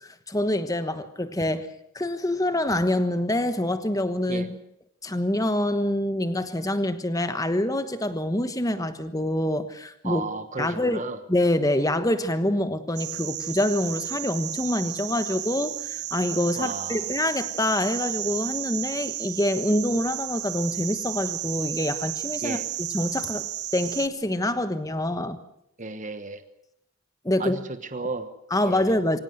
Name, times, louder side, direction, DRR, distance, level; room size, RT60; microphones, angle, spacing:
voice 1, 0.0-1.7 1.9-4.6 5.0-10.3 10.6-11.0 11.3-23.5 23.7-25.4 27.2-27.6 28.5-29.2, left 1 dB, 15° left, 11 dB, 1.2 m, -26 dB
voice 2, 10.0-11.2 16.5-17.0 22.4-22.7 25.8-26.4 27.4-28.3 28.6-28.9, right 3 dB, 35° right, 9 dB, 1.2 m, -33 dB
sound 1, 13.0-24.1, right 14 dB, 80° right, 0.9 m, -33 dB
24.0 x 17.5 x 8.0 m, 0.78 s
head